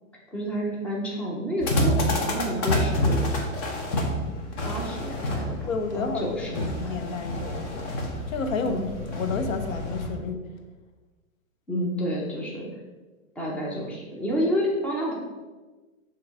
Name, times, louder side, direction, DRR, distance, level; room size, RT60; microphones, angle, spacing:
voice 1, 0.3-3.2 4.6-5.7 5.9-7.0 8.7-8.9 11.7-12.7 13.4-15.2, equal, 5° left, -3 dB, 0.7 m, -29 dB
sound 1, 1.6-10.1, left 1 dB, 30° left, 1.0 m, -28 dB
voice 2, 1.9-2.3 5.7-7.9 8.3-10.4, left 4 dB, 70° left, 7 dB, 0.9 m, -31 dB
6.8 x 3.1 x 4.8 m, 1.3 s
hypercardioid pair, 140°, 41 cm